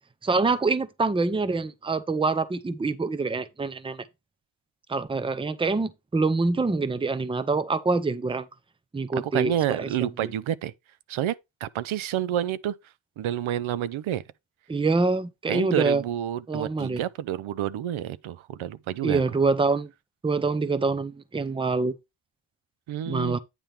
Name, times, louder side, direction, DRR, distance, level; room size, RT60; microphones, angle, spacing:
voice 1, 0.2-4.0 4.9-8.4 8.9-9.5 9.8-9.9 14.7-16.0 16.5-17.0 19.0-19.9 20.2-21.9 23.0-23.4, right 3 dB, 10° right, 0.5 m, -25 dB
voice 2, 9.2-10.7 11.1-11.3 11.6-12.7 13.2-14.2 15.5-19.2 22.9-23.4, right 11 dB, 85° right, 0.6 m, -29 dB
9.1 x 3.4 x 5.7 m
wide cardioid pair, 125°, 47 cm